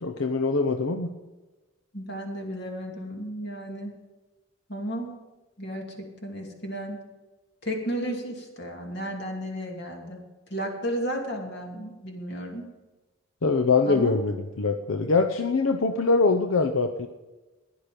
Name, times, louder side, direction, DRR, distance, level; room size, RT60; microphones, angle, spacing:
voice 1, 0.0-1.1 13.4-17.1, left 4 dB, 80° left, 6 dB, 0.8 m, -23 dB
voice 2, 1.9-3.9 4.7-5.1 5.6-7.0 7.6-10.2 10.5-12.7 13.9-14.2, equal, 55° left, 1 dB, 2.7 m, -33 dB
15.5 x 11.0 x 5.2 m, 1.2 s
head